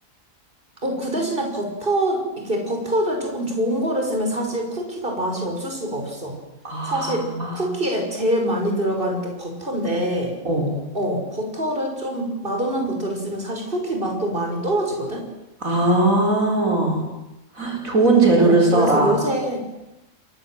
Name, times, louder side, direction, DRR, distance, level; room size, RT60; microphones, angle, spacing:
voice 1, 0.8-6.4 6.9-7.3 7.5-10.3 10.9-15.2 18.4-19.6, right 1 dB, 40° right, 2 dB, 5.8 m, -25 dB
voice 2, 6.6-7.9 10.4-10.8 15.6-17.1 17.5-19.2, right 2 dB, 80° right, 1 dB, 5.1 m, -19 dB
29.0 x 22.0 x 7.7 m, 0.96 s
omnidirectional pair, 1.4 m